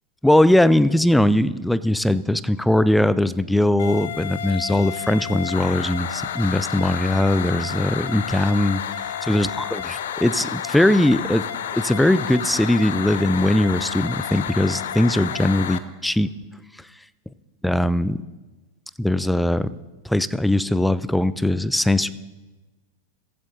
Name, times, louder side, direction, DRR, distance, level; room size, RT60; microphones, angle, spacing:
voice 1, 0.2-11.4 11.7-16.3 17.6-18.2 19.0-19.7 20.0-22.1, left 1 dB, 5° left, 16 dB, 0.4 m, -20 dB
sound 1, 3.8-15.8, left 9 dB, 60° left, 0.6 m, -30 dB
15.5 x 15.0 x 2.7 m, 1.2 s
figure-of-eight pair, 90°, 0 cm